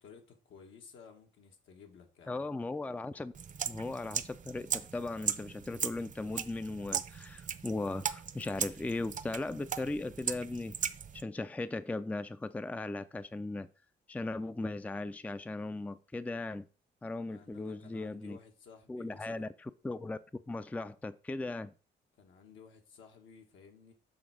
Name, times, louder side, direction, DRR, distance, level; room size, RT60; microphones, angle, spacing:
voice 1, 0.0-2.4 17.3-19.5 22.2-23.9, left 6 dB, 75° left, 1.6 m, -55 dB
voice 2, 2.3-3.3 3.7-10.7 11.1-13.7 14.1-16.7 17.0-18.4 18.9-20.2 20.5-21.7, left 2 dB, 5° left, 0.4 m, -38 dB
sound 1, 3.3-11.2, right 7 dB, 40° right, 0.7 m, -38 dB
7.3 x 3.4 x 6.3 m
cardioid pair, 90°, 20 cm